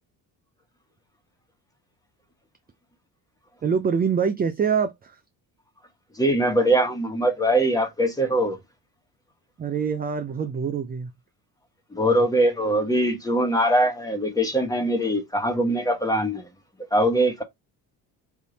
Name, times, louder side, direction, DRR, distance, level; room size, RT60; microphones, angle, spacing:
voice 1, 3.6-5.2 9.6-11.1, right 6 dB, 25° right, 0.5 m, -25 dB
voice 2, 6.1-8.6 11.9-16.5 16.9-17.4, right 1 dB, 10° left, 1.3 m, -22 dB
3.4 x 2.7 x 4.0 m
supercardioid pair, 95°, 42 cm